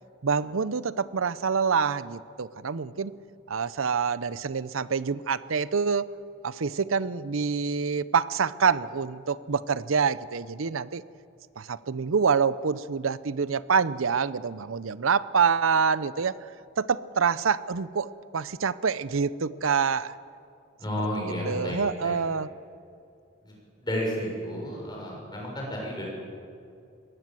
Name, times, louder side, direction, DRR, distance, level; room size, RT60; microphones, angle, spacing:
voice 1, 0.2-3.1 3.5-6.1 6.4-11.0 11.6-16.4 16.8-20.2 21.5-22.5, right 6 dB, 80° right, 17 dB, 0.7 m, -26 dB
voice 2, 20.8-21.8 22.0-22.2 23.4-23.5 23.8-26.0, equal, 20° left, -2 dB, 6.9 m, -32 dB
22.5 x 18.5 x 7.7 m, 2.4 s
head